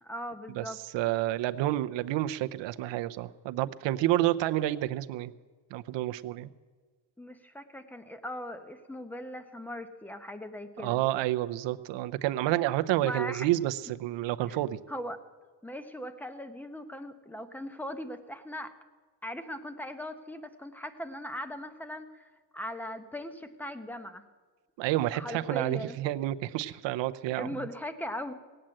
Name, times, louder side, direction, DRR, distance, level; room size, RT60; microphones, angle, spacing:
voice 1, 0.0-0.8 7.2-11.0 13.0-13.5 14.5-14.6 14.9-15.2 15.6-18.7 19.2-24.2 25.1-26.0 27.3-28.3, equal, 5° left, 10 dB, 0.9 m, -39 dB
voice 2, 0.9-5.3 5.7-6.5 10.8-14.8 24.8-27.6, right 15 dB, 75° right, 11 dB, 0.8 m, -29 dB
18.0 x 8.8 x 7.7 m, 1.4 s
cardioid pair, 130°, 44 cm